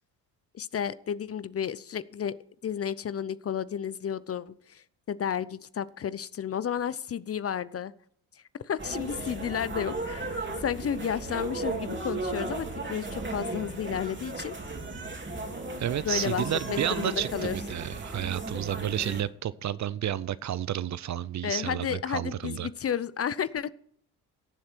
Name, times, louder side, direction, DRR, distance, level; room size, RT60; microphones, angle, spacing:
voice 1, 0.5-2.4 2.6-7.9 8.6-14.6 16.0-17.6 21.4-23.7, left 8 dB, 35° left, 18 dB, 0.6 m, -32 dB
sound 1, 8.8-19.2, right 2 dB, 25° right, 2.7 m, -35 dB
voice 2, 15.8-22.7, right 11 dB, 40° right, 18 dB, 0.6 m, -31 dB
17.0 x 7.3 x 4.5 m, 0.65 s
hypercardioid pair, 50°, 44 cm